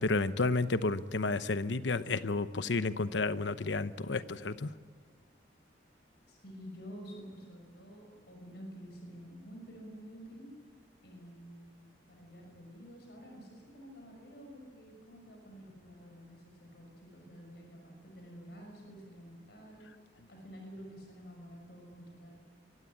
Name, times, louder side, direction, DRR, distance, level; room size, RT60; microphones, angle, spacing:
voice 1, 0.0-4.7, left 3 dB, 80° left, 13 dB, 0.9 m, -31 dB
voice 2, 6.3-10.5 11.0-22.3, equal, 65° left, 2 dB, 6.0 m, -50 dB
24.0 x 16.0 x 9.8 m, 1.5 s
head